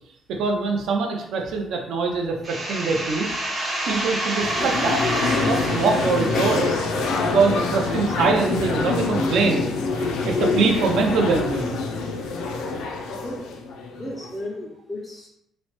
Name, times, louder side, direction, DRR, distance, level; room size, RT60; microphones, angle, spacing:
voice 1, 0.3-3.4 3.9-5.0 5.4-6.7 7.2-9.7 10.0-11.8, right 4 dB, 65° right, 2 dB, 0.5 m, -23 dB
sound 1, 2.4-7.9, right 1 dB, 25° right, 0.9 m, -29 dB
sound 2, 4.4-14.4, left 3 dB, 85° left, 0.4 m, -26 dB
voice 2, 14.0-15.3, left 1 dB, 5° left, -4 dB, 0.4 m, -34 dB
2.9 x 2.1 x 2.9 m, 0.78 s
cardioid pair, 165°, 0 cm